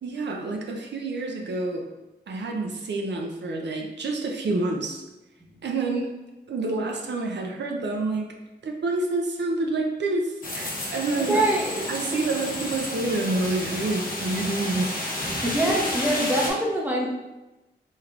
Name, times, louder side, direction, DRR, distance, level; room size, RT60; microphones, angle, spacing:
voice 1, 0.0-1.8 2.3-5.0 5.6-6.1 6.5-8.3 8.6-11.4 11.9-15.0 15.7-15.8, right 2 dB, 80° right, 1 dB, 0.4 m, -28 dB
sound 1, 10.4-16.5, left 1 dB, 55° left, 0.8 m, -31 dB
voice 2, 11.2-11.8 15.4-17.1, right 1 dB, 10° right, -2 dB, 0.6 m, -24 dB
3.2 x 3.1 x 2.4 m, 1.0 s
wide cardioid pair, 75°, 18 cm